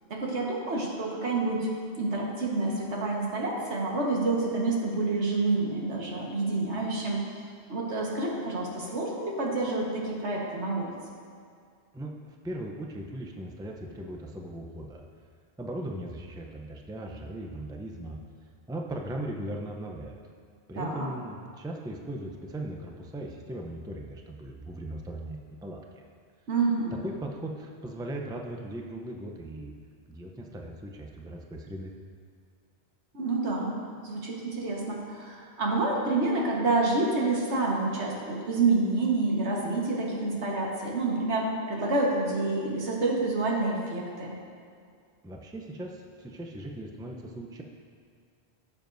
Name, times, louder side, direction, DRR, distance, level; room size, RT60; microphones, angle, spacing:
voice 1, 0.1-1.7 2.0-7.2 7.7-10.9 20.7-21.1 26.5-26.9 33.1-44.3, right 3 dB, 85° right, -3 dB, 1.7 m, -28 dB
voice 2, 11.9-15.0 15.6-18.2 18.7-20.2 20.7-26.0 26.9-29.7 30.1-31.9 45.2-47.6, right 1 dB, 5° right, 1 dB, 0.5 m, -38 dB
14.0 x 7.1 x 2.6 m, 2.2 s
omnidirectional pair, 1.1 m